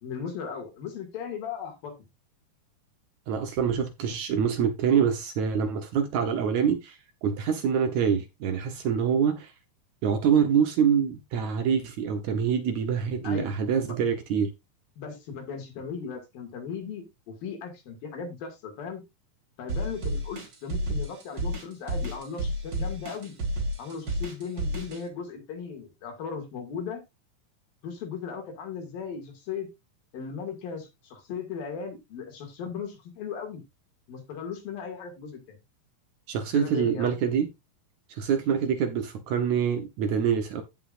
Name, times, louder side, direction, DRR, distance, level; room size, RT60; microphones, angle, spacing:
voice 1, 0.0-2.0 13.2-13.5 13.9-14.0 15.0-19.0 19.6-23.3 23.8-27.0 27.8-29.7 30.1-33.6 34.1-35.6 36.5-37.1, left 6 dB, 85° left, 4.1 m, -37 dB
voice 2, 3.3-9.5 10.0-14.5 36.3-37.5 38.1-40.6, right 7 dB, 70° right, 2.0 m, -25 dB
sound 1, 19.7-25.0, right 1 dB, 35° right, 2.5 m, -30 dB
16.0 x 5.5 x 2.5 m
omnidirectional pair, 4.0 m